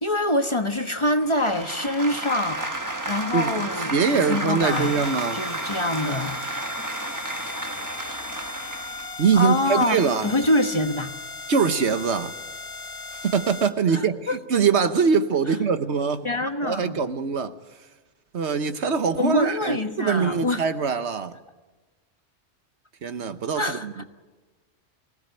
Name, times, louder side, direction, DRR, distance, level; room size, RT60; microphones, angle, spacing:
voice 1, 0.0-2.7 3.1-5.0 5.3-6.7 9.3-11.1 13.9-14.4 16.2-17.0 19.2-20.6 23.6-24.0, left 1 dB, 25° left, 1.2 m, -25 dB
sound 1, 1.2-9.2, right 2 dB, 15° right, 1.2 m, -32 dB
voice 2, 3.3-5.4 9.2-10.4 11.5-12.3 13.2-16.3 16.6-17.5 18.3-21.4 23.0-24.0, right 6 dB, 70° right, 1.4 m, -23 dB
sound 2, 4.6-13.7, left 3 dB, 60° left, 1.8 m, -37 dB
25.0 x 18.0 x 9.1 m
omnidirectional pair, 1.2 m